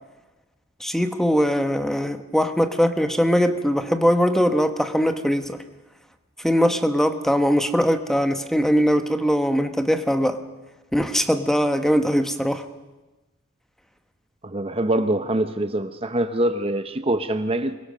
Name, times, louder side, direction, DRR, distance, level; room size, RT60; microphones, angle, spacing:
voice 1, 0.8-5.6 6.4-10.4 10.9-12.6, equal, ahead, 8 dB, 1.0 m, -21 dB
voice 2, 14.4-17.8, right 1 dB, 25° right, 9 dB, 0.7 m, -24 dB
24.5 x 22.0 x 6.6 m, 1.1 s
head